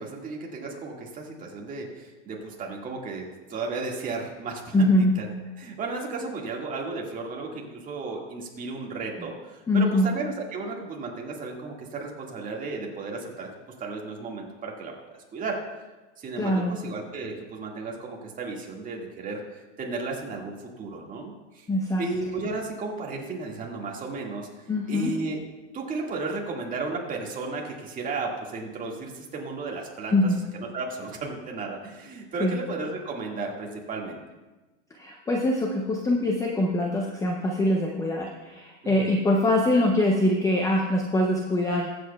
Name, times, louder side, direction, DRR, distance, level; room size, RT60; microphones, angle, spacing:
voice 1, 0.0-4.9 5.2-5.3 5.6-13.5 13.8-14.9 15.3-15.6 16.2-21.7 22.0-25.4 25.7-30.2 30.7-34.2 38.8-39.2, right 3 dB, 20° right, -1 dB, 1.9 m, -34 dB
voice 2, 4.7-5.1 9.7-10.1 16.4-16.8 21.7-22.0 24.7-25.1 30.1-30.4 32.4-32.6 35.0-41.9, left 1 dB, 10° left, 0 dB, 0.6 m, -23 dB
22.5 x 7.8 x 2.3 m, 1.2 s
supercardioid pair, 140°, 36 cm